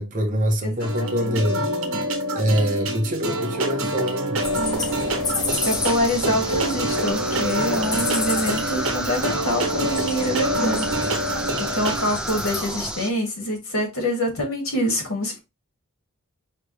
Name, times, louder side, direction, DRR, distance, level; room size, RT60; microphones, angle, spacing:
voice 1, 0.0-1.7 2.3-4.4, equal, 35° right, 1.0 m, -24 dB
voice 2, 0.6-1.4 5.6-10.9 11.7-15.4, left 1 dB, 75° left, 1.9 m, -25 dB
sound 1, 0.8-12.0, right 1 dB, 75° right, 1.1 m, -26 dB
sound 2, 4.4-12.9, left 2 dB, 20° left, 0.9 m, -31 dB
sound 3, 5.5-13.1, right 1 dB, 5° right, 0.4 m, -32 dB
4.6 x 3.5 x 3.1 m
head